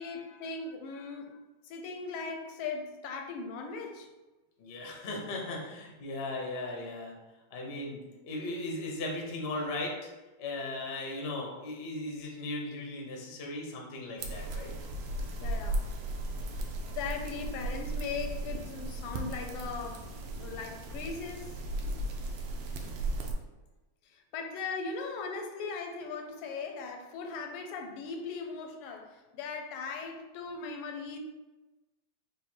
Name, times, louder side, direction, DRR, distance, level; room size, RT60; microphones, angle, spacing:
voice 1, 0.0-1.4 1.7-4.1 15.4-15.9 16.9-20.1 20.3-21.5 24.1-31.2, left 4 dB, 85° left, 4 dB, 1.6 m, -39 dB
voice 2, 4.6-7.1 7.5-9.9 10.4-14.7 21.8-22.0 22.8-22.9, left 2 dB, 65° left, -1 dB, 0.6 m, -37 dB
sound 1, 14.2-23.3, right 1 dB, 85° right, 1.6 m, -36 dB
5.3 x 2.1 x 4.4 m, 1.1 s
omnidirectional pair, 2.4 m